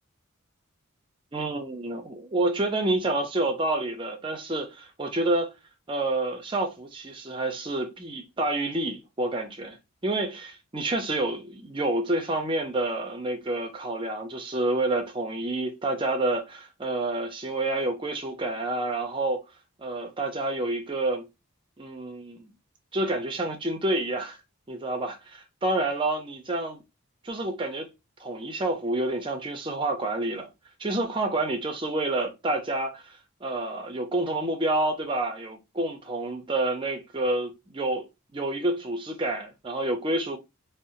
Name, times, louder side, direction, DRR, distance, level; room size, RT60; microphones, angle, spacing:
voice 1, 1.3-5.5 5.9-9.8 10.0-19.4 19.8-21.3 21.8-22.5 22.9-24.4 24.7-26.8 27.2-27.9 28.2-30.5 30.8-33.1 33.4-38.0 38.3-40.4, right 2 dB, 25° right, 0.5 m, -28 dB
2.9 x 2.0 x 2.4 m
head